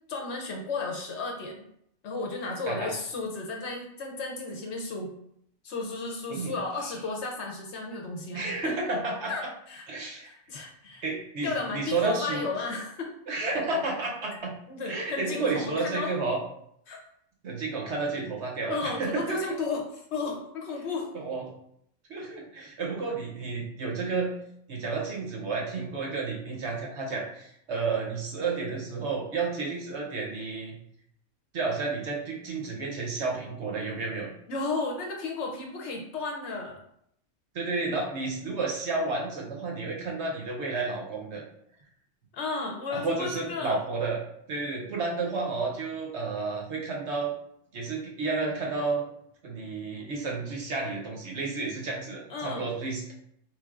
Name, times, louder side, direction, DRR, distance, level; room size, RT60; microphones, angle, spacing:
voice 1, 0.1-1.6 2.0-5.1 5.6-8.7 9.3-9.4 9.7-9.8 10.2-11.0 11.4-13.1 14.3-14.4 14.7-16.1 16.9-17.0 18.7-21.1 34.5-36.8 42.3-43.8 52.3-52.7, left 3 dB, 60° left, 1 dB, 0.8 m, -33 dB
voice 2, 8.3-9.3 9.9-10.3 11.0-12.5 13.3-14.5 14.8-16.4 17.4-19.5 21.1-21.4 22.1-24.3 24.7-30.8 31.5-34.3 37.5-41.4 42.9-44.2 44.5-47.3 47.7-49.0 49.4-53.1, right 3 dB, 60° right, -1 dB, 0.9 m, -31 dB
3.8 x 3.2 x 2.4 m, 0.71 s
omnidirectional pair, 1.4 m